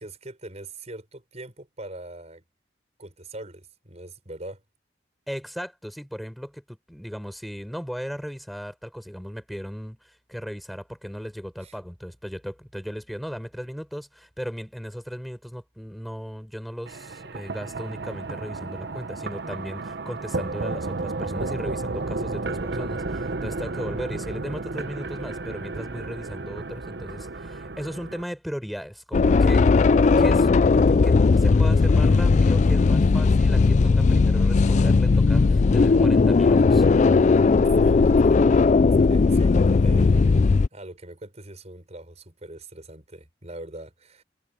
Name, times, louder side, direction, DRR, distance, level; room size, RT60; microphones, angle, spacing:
voice 1, 0.0-2.4 3.0-4.6 11.6-11.8 37.8-38.5 39.1-40.4 40.7-44.2, right 1 dB, 40° right, 5.8 m, -42 dB
voice 2, 5.3-29.7 30.2-30.5 30.9-36.9, equal, ahead, 6.4 m, -36 dB
sound 1, 16.9-28.2, right 3 dB, 65° right, 0.9 m, -32 dB
sound 2, 29.1-40.7, left 4 dB, 40° left, 0.4 m, -18 dB
head